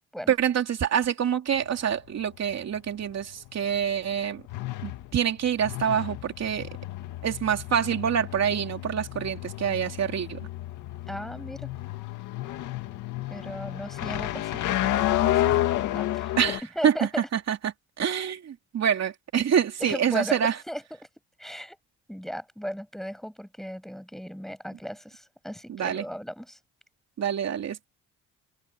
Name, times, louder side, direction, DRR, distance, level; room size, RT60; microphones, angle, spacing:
voice 1, 0.3-4.4 4.8-6.7 7.2-10.4 16.4-20.6 25.7-26.0 27.2-27.9, right 8 dB, 60° right, 3.0 m, -26 dB
sound 1, 1.5-16.6, left 14 dB, 90° left, 2.1 m, -31 dB
voice 2, 11.1-11.7 13.3-15.6 15.9-16.3 16.8-17.1 19.8-20.8 21.4-21.8 22.1-26.6, equal, ahead, 7.3 m, -36 dB
cardioid pair, 90°, 30 cm